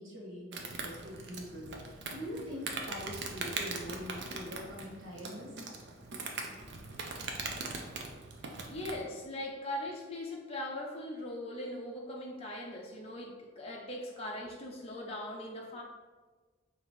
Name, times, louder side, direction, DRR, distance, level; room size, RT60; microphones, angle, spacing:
voice 1, 0.0-5.5, equal, 75° right, -4 dB, 1.2 m, -43 dB
Insect, 0.5-9.0, right 3 dB, 55° right, 0.5 m, -41 dB
voice 2, 8.7-15.8, left 1 dB, 30° left, -2 dB, 0.5 m, -40 dB
5.3 x 2.8 x 3.1 m, 1.4 s
head